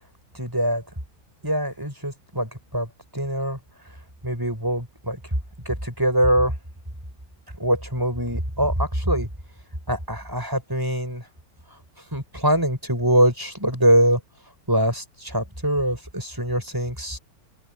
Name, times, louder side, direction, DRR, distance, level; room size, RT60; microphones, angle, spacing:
voice 1, 0.3-0.8 1.4-3.6 4.2-5.2 5.7-6.5 7.6-9.3 9.9-11.3 12.1-14.2 14.7-17.2, right 1 dB, 10° right, 5.5 m, -23 dB
open air
omnidirectional pair, 2.1 m